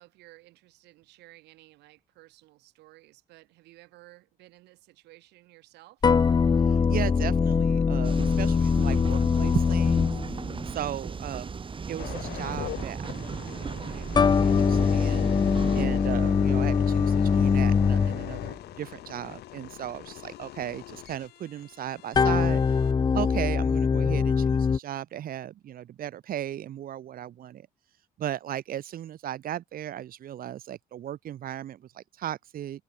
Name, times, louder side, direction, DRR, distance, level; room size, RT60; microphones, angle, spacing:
voice 1, 0.0-6.1, right 19 dB, 85° right, 6.9 m, -55 dB
sound 1, 6.0-10.7 14.1-18.5 22.1-24.8, left 5 dB, 25° left, 0.7 m, -23 dB
voice 2, 6.6-10.2 10.6-11.5 11.9-22.8 23.1-27.7 28.2-32.8, right 11 dB, 60° right, 3.2 m, -36 dB
sound 2, 8.0-15.9, right 5 dB, 30° right, 6.0 m, -36 dB
sound 3, 12.0-22.9 23.5-23.7, left 15 dB, 75° left, 3.5 m, -38 dB
cardioid pair, 110°, 17 cm